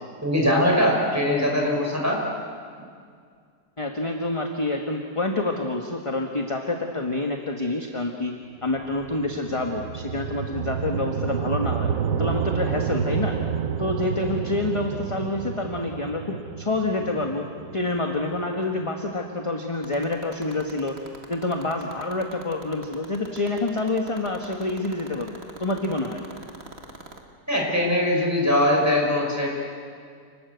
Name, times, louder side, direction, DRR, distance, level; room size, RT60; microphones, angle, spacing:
voice 1, 0.2-2.2 27.5-29.5, left 1 dB, 10° right, -1 dB, 5.3 m, -21 dB
voice 2, 3.8-8.3 8.6-11.9 12.2-13.4 13.8-17.5 17.7-21.0 21.3-26.2, left 2 dB, 20° left, 3 dB, 1.4 m, -27 dB
sound 1, 8.6-18.8, right 7 dB, 55° right, 1.2 m, -30 dB
sound 2, 19.7-27.2, right 3 dB, 35° right, 2.2 m, -40 dB
29.5 x 20.0 x 8.1 m, 2.2 s
omnidirectional pair, 1.9 m